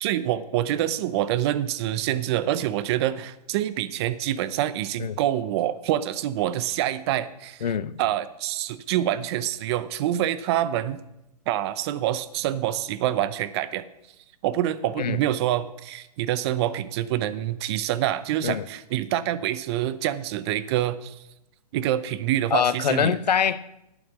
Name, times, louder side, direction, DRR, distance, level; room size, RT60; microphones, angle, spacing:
voice 1, 0.0-7.7 8.0-11.0 11.5-13.9 14.4-21.2 21.7-23.2, right 12 dB, 40° right, 0.7 m, -26 dB
voice 2, 7.6-8.0 15.0-15.2 18.4-18.6 22.5-23.8, left 8 dB, 85° left, 0.7 m, -24 dB
11.0 x 8.6 x 6.2 m
hypercardioid pair, 130°, 21 cm